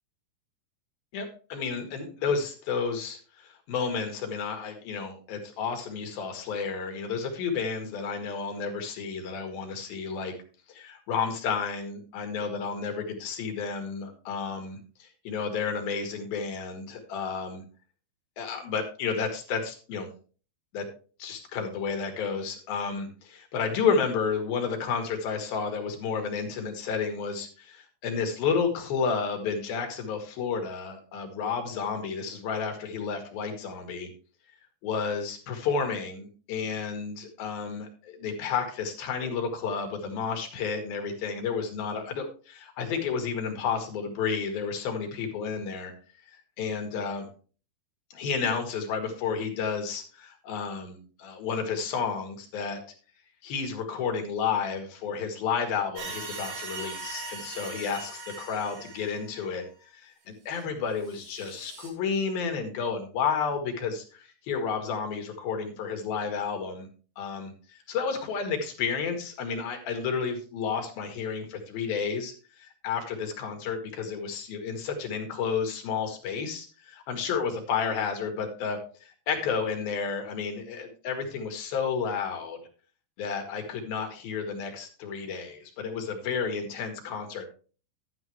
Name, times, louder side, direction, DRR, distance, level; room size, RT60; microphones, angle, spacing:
voice 1, 1.1-10.3 10.7-17.6 18.4-20.1 20.7-20.9 21.2-34.1 34.8-45.9 46.3-47.3 48.1-52.8 53.4-59.6 59.9-66.9 67.2-82.6 83.2-87.5, left 6 dB, 60° left, 4 dB, 2.9 m, -31 dB
sound 1, 56.0-59.7 60.6-60.7 61.0-61.9, right 3 dB, 85° right, 5.4 m, -40 dB
11.5 x 9.8 x 3.1 m, 0.37 s
omnidirectional pair, 5.5 m